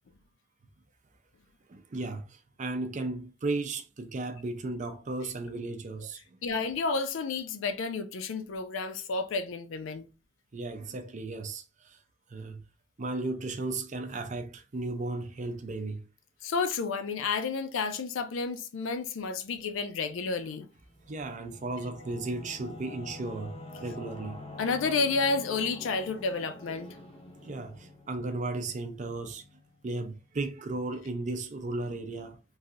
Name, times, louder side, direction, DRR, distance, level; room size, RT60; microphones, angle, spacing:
voice 1, 1.7-6.4 10.5-12.0 12.3-12.6 13.0-16.0 21.1-23.6 23.8-24.4 27.4-29.5 29.8-32.4, right 2 dB, 40° right, 0.5 m, -35 dB
voice 2, 6.4-10.1 16.4-20.6 24.6-26.9, left 4 dB, 75° left, 0.4 m, -31 dB
Singing / Musical instrument, 20.9-30.1, left 1 dB, 30° left, 0.6 m, -47 dB
3.1 x 2.7 x 2.5 m
head